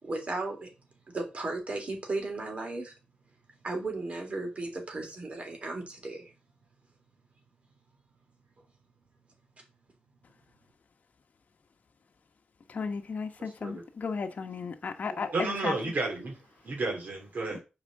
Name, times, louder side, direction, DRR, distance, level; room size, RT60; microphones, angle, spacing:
voice 1, 0.0-0.7 1.1-2.9 3.6-6.3, right 2 dB, 40° right, 3.5 m, -35 dB
voice 2, 12.7-15.7 17.5-17.6, left 5 dB, 55° left, 1.0 m, -34 dB
voice 3, 15.1-16.4 16.6-17.6, right 3 dB, 60° right, 2.7 m, -32 dB
7.3 x 4.9 x 6.3 m
wide cardioid pair, 130°, 3 cm